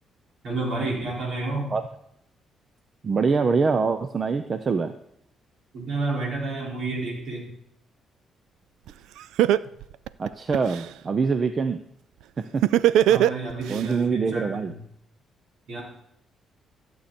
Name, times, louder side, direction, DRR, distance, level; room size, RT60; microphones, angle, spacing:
voice 1, 0.4-1.7 5.7-7.5 13.1-14.8 15.7-15.8, right 3 dB, 65° right, -3 dB, 5.1 m, -30 dB
voice 2, 3.0-5.0 10.2-11.8 12.4-12.6 13.7-14.7, right 5 dB, 40° right, 9 dB, 0.6 m, -24 dB
Laughter, 8.9-9.0 9.4-10.8 12.6-13.8, right 12 dB, 90° right, 0.3 m, -19 dB
14.5 x 8.1 x 4.3 m, 0.74 s
cardioid pair, 90°, 0 cm